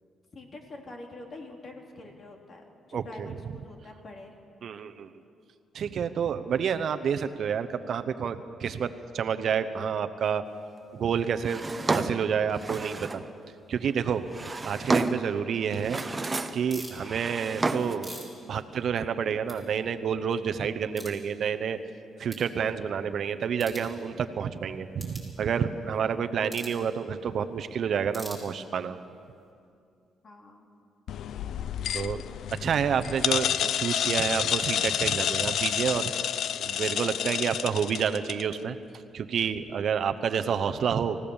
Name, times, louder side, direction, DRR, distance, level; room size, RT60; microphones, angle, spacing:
voice 1, 0.3-2.6 2.9-4.3 30.2-30.7, left 2 dB, 45° left, 2 dB, 3.3 m, -45 dB
voice 2, 2.9-3.3 4.6-5.1 5.7-10.4 10.9-13.2 13.7-14.2 14.6-16.0 16.5-21.8 22.2-29.0 31.9-32.2 32.5-36.1 36.6-38.8 39.1-41.2, right 7 dB, 60° right, 9 dB, 0.9 m, -29 dB
Drawer open or close, 11.4-13.3 14.1-15.3 15.7-16.7 16.9-18.1, right 3 dB, 20° right, 1.1 m, -30 dB
sound 1, 16.7-17.0 17.7-19.2 19.4-19.6 20.0-20.1 20.9-21.2 21.8-21.9 22.3-22.5 23.5-23.9 25.0-25.3 26.5-26.8 28.1-28.9, right 1 dB, 10° left, 5.9 m, -43 dB
sound 2, 31.1-38.5, left 10 dB, 70° left, 0.5 m, -29 dB
25.0 x 16.0 x 7.2 m, 2.5 s
cardioid pair, 90°, 0 cm